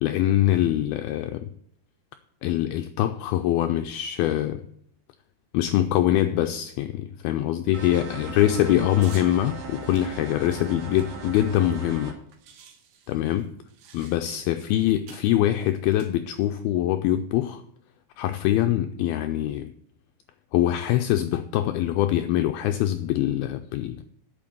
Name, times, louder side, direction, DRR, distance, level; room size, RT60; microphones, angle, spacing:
voice 1, 0.0-1.5 2.4-4.6 5.5-12.1 13.1-13.5 13.9-17.6 18.2-19.7 20.5-24.0, left 12 dB, 85° left, 2.1 m, -24 dB
sound 1, 7.7-12.1, right 4 dB, 45° right, 2.9 m, -38 dB
sound 2, 9.0-9.3 9.9-11.8 12.0-12.1 12.3-14.5 15.1-15.3 15.9-16.6, right 7 dB, 75° right, 3.5 m, -50 dB
8.9 x 7.5 x 7.8 m
omnidirectional pair, 5.0 m